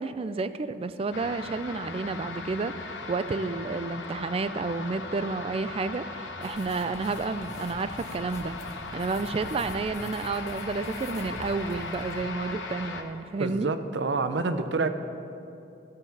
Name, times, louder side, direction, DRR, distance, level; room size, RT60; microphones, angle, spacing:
voice 1, 0.0-2.7 3.1-8.6 8.9-13.7, right 3 dB, 35° right, 12 dB, 0.3 m, -31 dB
sound 1, 1.1-13.0, left 3 dB, 85° left, 0.8 m, -38 dB
sound 2, 6.4-12.2, left 1 dB, 40° left, 1.1 m, -45 dB
voice 2, 13.4-14.9, right 3 dB, 75° right, 10 dB, 0.6 m, -27 dB
12.5 x 5.8 x 7.1 m, 2.7 s
head